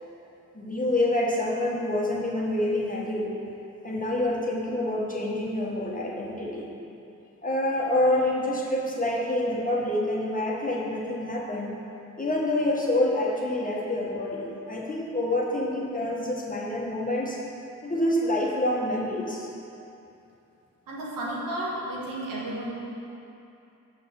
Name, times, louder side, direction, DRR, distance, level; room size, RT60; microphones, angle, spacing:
voice 1, 0.5-3.3 3.8-6.7 7.4-11.7 12.2-17.4 17.8-19.5, left 1 dB, 25° left, -3 dB, 1.6 m, -27 dB
voice 2, 20.9-22.7, right 1 dB, 90° right, -6 dB, 1.5 m, -32 dB
5.8 x 4.9 x 6.5 m, 2.8 s
supercardioid pair, 45°, 33 cm